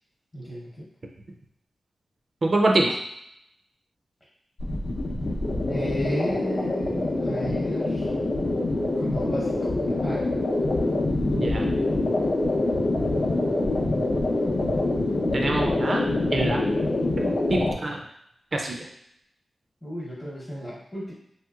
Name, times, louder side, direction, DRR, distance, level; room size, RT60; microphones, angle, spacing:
voice 1, 0.3-0.9 5.7-8.1 9.0-10.3 19.8-21.1, equal, 20° left, -9 dB, 0.8 m, -33 dB
voice 2, 2.4-3.0 11.3-11.7 15.3-16.6 17.1-18.0 18.5-18.9, right 2 dB, 45° right, 0 dB, 0.4 m, -25 dB
sound 1, 4.6-17.7, left 2 dB, 55° left, 0.6 m, -25 dB
3.0 x 2.8 x 2.3 m, 0.76 s
wide cardioid pair, 120°, 0 cm